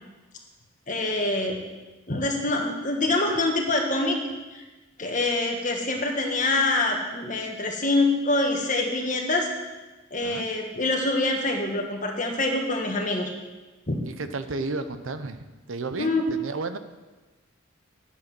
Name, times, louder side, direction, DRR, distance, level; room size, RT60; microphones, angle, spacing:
voice 1, 0.9-1.5 2.1-4.2 4.5-4.6 5.0-9.5 10.1-13.3 13.9-14.0 16.0-16.2, left 2 dB, 40° left, 2 dB, 1.5 m, -25 dB
voice 2, 14.1-16.8, right 3 dB, 90° right, 10 dB, 0.8 m, -33 dB
10.5 x 7.5 x 6.1 m, 1.2 s
head